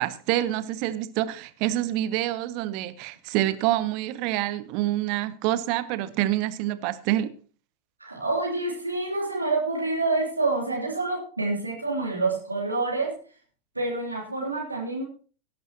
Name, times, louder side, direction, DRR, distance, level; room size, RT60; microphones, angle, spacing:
voice 1, 0.0-7.3, right 14 dB, 45° right, 1.0 m, -27 dB
voice 2, 8.0-13.2 13.7-15.1, right 3 dB, 85° right, 3.2 m, -27 dB
17.5 x 11.0 x 2.9 m
figure-of-eight pair, 90°, 0 cm